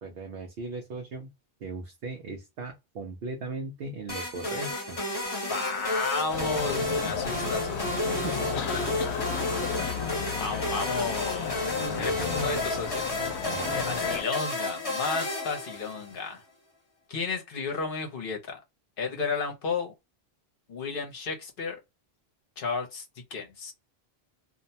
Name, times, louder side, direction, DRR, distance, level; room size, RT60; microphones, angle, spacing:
voice 1, 0.0-1.3 1.6-5.0 8.2-8.7 11.7-12.5 13.4-13.8, right 3 dB, 70° right, 0.8 m, -38 dB
sound 1, 4.1-16.3, left 1 dB, 35° left, 1.2 m, -32 dB
voice 2, 5.5-8.3 8.6-8.9 10.4-11.6 12.0-13.1 13.8-16.4 17.1-18.6 19.0-19.9 20.7-21.8 22.6-23.0 23.3-23.7, left 4 dB, 60° left, 0.9 m, -33 dB
sound 2, 6.3-14.2, left 6 dB, 90° left, 0.9 m, -33 dB
2.5 x 2.1 x 2.6 m
omnidirectional pair, 1.1 m